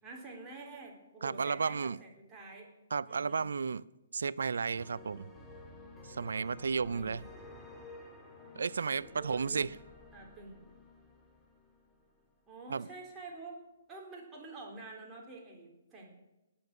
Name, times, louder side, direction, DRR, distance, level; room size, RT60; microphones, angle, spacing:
voice 1, 0.0-2.7 3.1-3.5 6.4-7.2 8.8-9.6 10.1-10.6 12.5-13.6 13.9-16.1, right 3 dB, 15° right, -2 dB, 3.7 m, -48 dB
voice 2, 1.2-2.0 2.9-3.8 4.1-5.3 6.1-7.2 8.5-9.7 12.7-12.9, right 5 dB, 70° right, 22 dB, 0.4 m, -33 dB
sound 1, 4.7-12.4, left 2 dB, 5° left, 1.9 m, -53 dB
19.0 x 7.0 x 6.5 m, 1.0 s
figure-of-eight pair, 130°, 0 cm